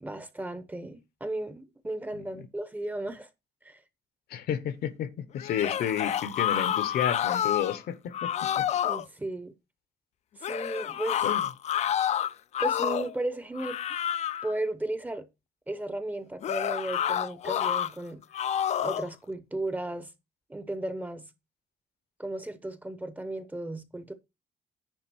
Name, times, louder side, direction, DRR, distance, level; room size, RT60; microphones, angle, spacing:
voice 1, 0.0-3.3 3.6-3.8 8.8-9.5 10.4-11.2 12.6-13.8 14.4-15.3 15.7-18.2 18.8-20.1 20.5-21.3 22.2-24.1, right 1 dB, 10° right, 0.7 m, -35 dB
voice 2, 4.3-8.3 8.6-8.7 11.2-11.5, left 9 dB, 70° left, 1.0 m, -31 dB
sound 1, 5.4-7.8 8.1-9.0 10.4-13.1 13.6-14.5 16.4-17.9 18.3-19.1, left 10 dB, 45° left, 0.4 m, -29 dB
10.0 x 3.5 x 6.1 m
cardioid pair, 150°, 17 cm